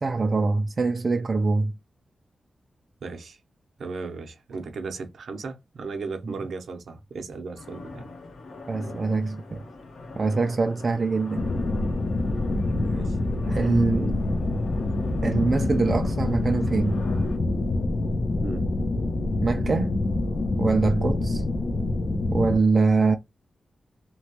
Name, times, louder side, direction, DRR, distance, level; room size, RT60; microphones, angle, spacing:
voice 1, 0.0-1.7 6.3-6.4 8.7-9.6 10.2-11.5 13.5-14.2 15.2-17.0 19.4-20.0 20.6-21.4 22.3-23.2, right 4 dB, 35° right, 0.3 m, -24 dB
voice 2, 3.0-3.4 3.8-8.1 12.8-13.2 18.4-18.7, right 4 dB, 75° right, 0.7 m, -36 dB
sound 1, 7.6-17.4, left 2 dB, 80° left, 1.1 m, -42 dB
sound 2, 11.3-22.6, left 2 dB, 60° left, 0.5 m, -26 dB
2.9 x 2.2 x 2.9 m
wide cardioid pair, 155°, 0 cm